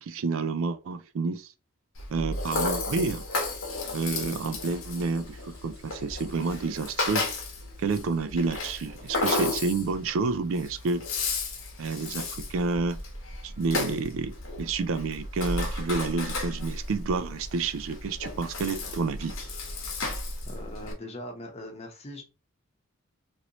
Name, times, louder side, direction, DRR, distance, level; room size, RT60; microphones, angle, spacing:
voice 1, 0.0-1.5 2.1-3.2 3.9-7.3 7.8-11.1 11.8-13.0 13.4-19.4, right 4 dB, 65° right, 0.4 m, -29 dB
Rattle (instrument), 2.0-20.9, left 2 dB, 70° left, 0.9 m, -34 dB
sound 1, 12.2-20.1, right 1 dB, 25° right, 0.7 m, -44 dB
voice 2, 20.4-22.2, left 1 dB, 30° left, 0.8 m, -40 dB
3.0 x 2.6 x 2.9 m
head